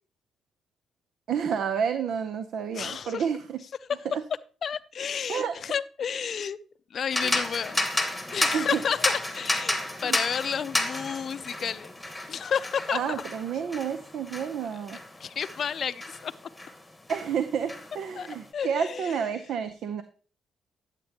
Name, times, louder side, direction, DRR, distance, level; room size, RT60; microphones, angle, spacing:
voice 1, 1.3-3.6 4.1-4.2 5.3-5.5 8.5-8.8 10.0-10.2 12.9-15.0 17.1-20.0, right 7 dB, 70° right, 9 dB, 0.7 m, -30 dB
voice 2, 2.7-3.3 4.6-6.6 6.9-8.0 8.3-11.9 12.3-13.3 15.2-16.3 18.2-18.3 18.5-19.1, left 7 dB, 55° left, 15 dB, 0.5 m, -31 dB
sound 1, 7.1-16.8 17.1-18.4, left 1 dB, 5° left, 1.4 m, -32 dB
11.5 x 8.2 x 2.9 m, 0.40 s
cardioid pair, 90°, 0 cm